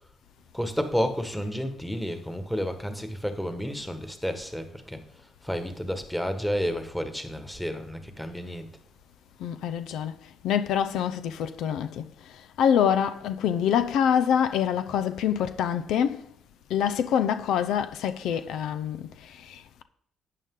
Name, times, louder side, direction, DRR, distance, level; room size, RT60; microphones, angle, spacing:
voice 1, 0.5-8.7, equal, 5° left, 1.6 m, -31 dB
voice 2, 9.4-10.2 10.4-12.1 12.6-16.2 16.7-19.8, left 8 dB, 85° left, 0.7 m, -26 dB
12.0 x 8.6 x 3.8 m
cardioid pair, 90°, 0 cm